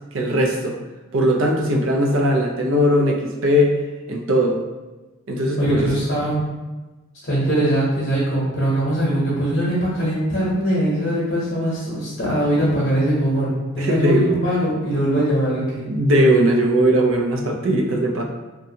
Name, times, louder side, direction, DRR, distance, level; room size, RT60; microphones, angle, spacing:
voice 1, 0.1-0.8 1.1-3.8 4.1-4.6 5.3-6.0 13.8-14.4 15.9-18.2, equal, 65° right, 1 dB, 0.4 m, -19 dB
voice 2, 5.6-6.4 7.2-15.9, right 1 dB, 50° left, -8 dB, 0.9 m, -21 dB
2.6 x 2.2 x 2.7 m, 1.2 s
head